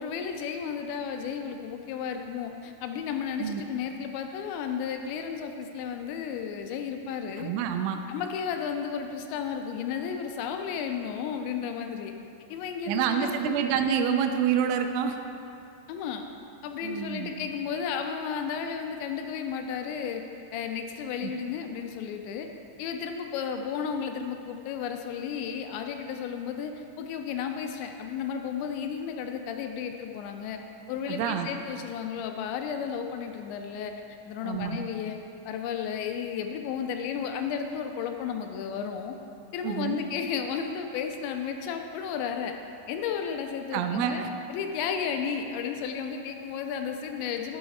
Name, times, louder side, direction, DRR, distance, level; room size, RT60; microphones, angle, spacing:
voice 1, 0.0-7.5 8.1-12.1 12.5-13.6 15.9-16.3 16.6-20.2 20.5-22.5 22.8-30.6 30.9-33.9 34.3-35.2 35.5-39.2 39.5-42.5 42.9-44.2 44.5-47.6, left 7 dB, 80° left, 5 dB, 2.7 m, -33 dB
voice 2, 7.4-8.0 12.9-15.2 16.8-17.3 21.2-21.3 31.1-31.5 34.4-34.8 39.6-40.0 43.7-44.3, right 8 dB, 85° right, 6 dB, 3.0 m, -27 dB
12.5 x 5.6 x 4.1 m, 2.6 s
omnidirectional pair, 5.5 m